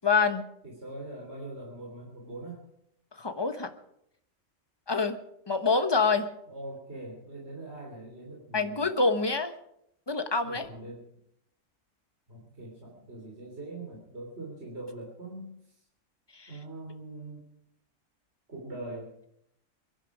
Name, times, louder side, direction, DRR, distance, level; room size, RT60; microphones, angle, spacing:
voice 1, 0.0-0.4 3.2-3.7 4.9-5.2 5.5-6.3 8.5-9.5 10.1-10.6 16.4-16.5, left 4 dB, 20° left, 8 dB, 1.0 m, -26 dB
voice 2, 0.6-2.6 6.5-8.9 10.4-11.1 12.3-15.8 16.5-17.4 18.5-19.1, right 2 dB, 55° right, -2 dB, 3.8 m, -42 dB
23.0 x 11.5 x 4.9 m, 0.77 s
omnidirectional pair, 1.4 m